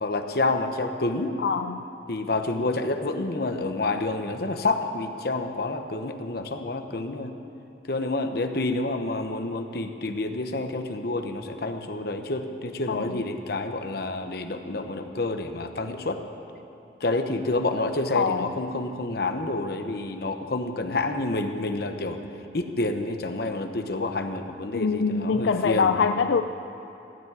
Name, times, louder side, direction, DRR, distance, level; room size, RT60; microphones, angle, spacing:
voice 1, 0.0-1.4 2.1-7.3 7.9-16.2 17.0-22.2 22.5-25.9, left 2 dB, 60° left, 6 dB, 1.0 m, -28 dB
voice 2, 1.4-1.8 12.9-13.2 18.1-18.5 24.7-26.4, left 5 dB, 85° left, 8 dB, 0.4 m, -24 dB
15.5 x 7.4 x 9.5 m, 2.9 s
head